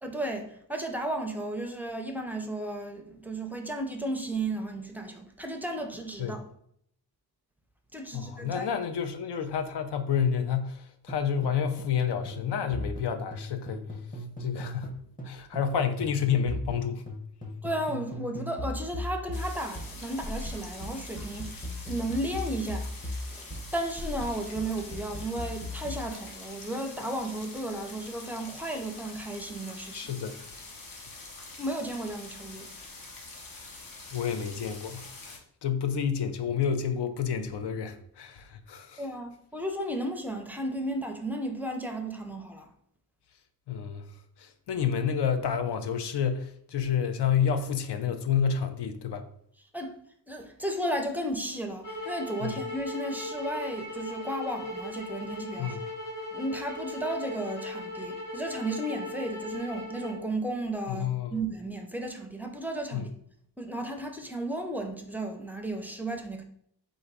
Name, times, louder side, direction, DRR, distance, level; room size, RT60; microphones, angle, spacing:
voice 1, 0.0-6.5 7.9-8.7 17.6-23.5 23.7-30.1 31.6-32.7 39.0-42.7 49.7-49.9 50.3-55.8 56.3-63.1 63.6-66.4, right 1 dB, 5° right, 0.4 m, -34 dB
voice 2, 8.1-13.8 14.4-15.0 15.2-17.0 29.9-30.4 34.1-39.0 43.7-44.1 44.4-49.2 52.4-52.6 55.6-55.8 60.9-61.3 62.9-63.1, left 7 dB, 75° left, 0.6 m, -29 dB
sound 1, 11.1-12.0 12.3-15.7 16.0-26.1, left 1 dB, 20° left, 0.8 m, -38 dB
sound 2, 19.3-35.4, left 3 dB, 55° left, 0.9 m, -45 dB
sound 3, 51.8-60.2, left 2 dB, 40° left, 1.7 m, -38 dB
3.8 x 2.7 x 4.6 m
wide cardioid pair, 145°, 41 cm